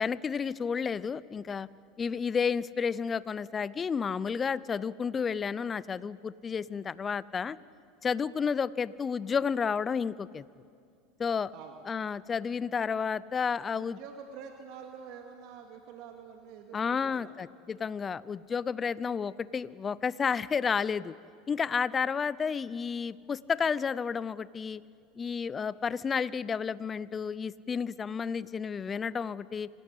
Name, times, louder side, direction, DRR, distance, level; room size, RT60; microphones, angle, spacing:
voice 1, 0.0-1.7 2.0-7.6 8.0-10.4 11.2-11.5 11.9-14.0 16.7-21.1 21.5-24.8 25.2-29.7, left 6 dB, 25° left, 19 dB, 0.6 m, -31 dB
voice 2, 11.5-11.8 13.7-17.4, right 6 dB, 60° right, 3 dB, 2.2 m, -47 dB
26.5 x 17.0 x 8.4 m, 2.3 s
supercardioid pair, 110°, 0 cm